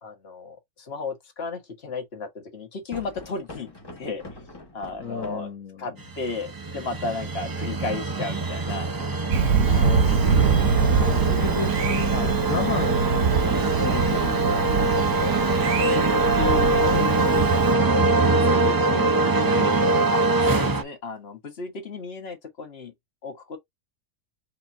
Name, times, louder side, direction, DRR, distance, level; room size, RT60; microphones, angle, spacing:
voice 1, 0.0-3.7 4.0-4.2 4.7-5.5 5.8-8.9 9.6-10.0 10.9-11.4 12.1-12.3 18.5-18.6 20.1-22.9 23.2-23.6, left 3 dB, 50° left, 1.8 m, -34 dB
sound 1, 2.9-5.6 8.7-14.6, left 2 dB, 20° left, 1.1 m, -44 dB
voice 2, 5.0-5.9 9.6-13.3 13.7-14.7 16.3-20.1, left 5 dB, 80° left, 1.7 m, -34 dB
sound 2, 6.1-20.8, right 3 dB, 30° right, 0.4 m, -23 dB
Thunder, 9.3-17.7, right 6 dB, 70° right, 1.2 m, -24 dB
4.9 x 2.9 x 3.6 m
omnidirectional pair, 1.4 m